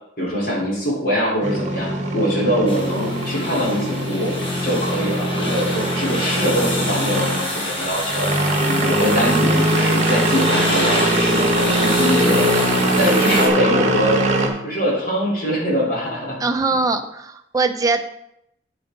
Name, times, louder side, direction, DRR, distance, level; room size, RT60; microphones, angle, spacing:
voice 1, 0.2-4.3 4.6-14.2 14.6-16.4 16.7-16.8, equal, 50° left, -5 dB, 3.9 m, -23 dB
sound 1, 1.4-14.5, right 1 dB, 40° right, 1.3 m, -21 dB
sound 2, 2.7-13.5, left 1 dB, 30° left, 1.9 m, -27 dB
voice 2, 16.4-18.0, right 3 dB, 20° right, 5 dB, 0.6 m, -21 dB
9.0 x 8.0 x 3.9 m, 0.80 s
head